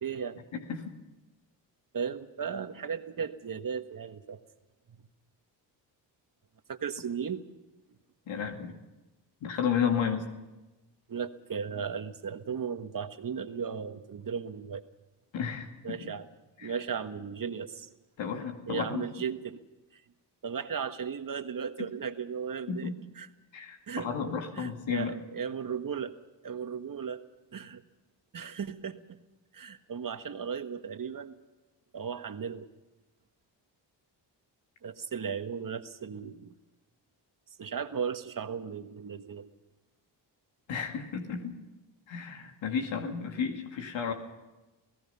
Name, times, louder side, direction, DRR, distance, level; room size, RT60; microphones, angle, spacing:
voice 1, 0.0-0.4 1.9-4.4 4.9-5.1 6.7-7.5 11.1-14.8 15.8-16.3 16.6-17.9 18.7-19.6 19.9-20.0 20.4-23.3 23.9-24.1 24.5-26.2 26.4-27.2 27.5-27.8 28.3-29.2 29.5-31.4 31.9-32.7 34.8-36.6 37.6-39.5, right 6 dB, 45° right, 8 dB, 1.6 m, -36 dB
voice 2, 0.5-0.9 8.3-8.7 9.4-10.3 15.3-16.0 16.6-16.8 18.2-19.0 21.8-21.9 22.7-22.9 23.5-25.1 40.7-41.6 42.1-44.1, left 7 dB, 80° left, 3 dB, 2.4 m, -32 dB
29.0 x 17.0 x 5.7 m, 1.1 s
cardioid pair, 70°, 45 cm